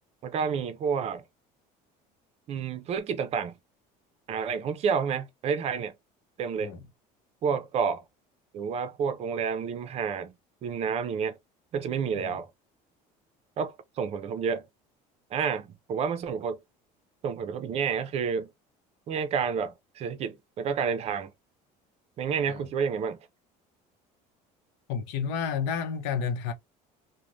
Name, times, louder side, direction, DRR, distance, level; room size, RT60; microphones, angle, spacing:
voice 1, 0.2-1.2 2.5-3.5 4.3-5.9 6.4-6.7 7.4-8.0 8.5-10.3 10.6-11.4 11.7-12.5 13.6-14.6 15.3-16.6 17.2-18.5 19.1-21.3 22.2-23.2, right 6 dB, 40° right, 0.5 m, -29 dB
voice 2, 24.9-26.5, left 6 dB, 85° left, 0.7 m, -31 dB
3.0 x 2.1 x 2.5 m
cardioid pair, 150°, 17 cm